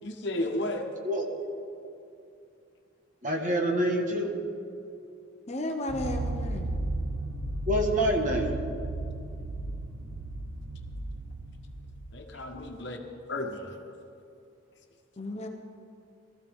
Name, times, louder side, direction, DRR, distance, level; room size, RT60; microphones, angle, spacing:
voice 1, 0.0-0.9 12.1-13.0 13.3-13.8, left 1 dB, 55° left, 3 dB, 1.3 m, -33 dB
voice 2, 3.2-4.3 7.7-8.5, equal, 40° right, 1 dB, 1.5 m, -26 dB
voice 3, 5.5-6.7 15.2-15.5, left 1 dB, 30° left, 3 dB, 0.8 m, -33 dB
sound 1, 5.9-12.4, right 2 dB, 75° right, 1.1 m, -34 dB
19.5 x 14.0 x 3.6 m, 2.6 s
head